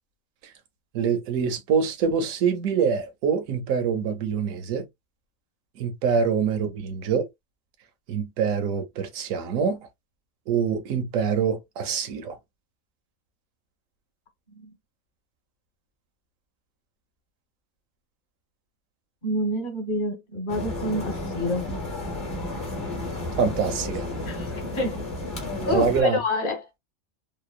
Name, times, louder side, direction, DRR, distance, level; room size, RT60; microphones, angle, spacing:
voice 1, 0.9-4.8 5.8-7.2 8.1-9.8 10.5-12.4 23.4-24.1 25.7-26.2, right 6 dB, 75° right, 1.1 m, -25 dB
voice 2, 19.2-21.7 24.3-25.1 25.6-26.7, left 1 dB, 40° left, 1.1 m, -28 dB
sound 1, 20.5-26.0, left 2 dB, 25° left, 0.7 m, -32 dB
2.9 x 2.0 x 2.3 m
omnidirectional pair, 1.4 m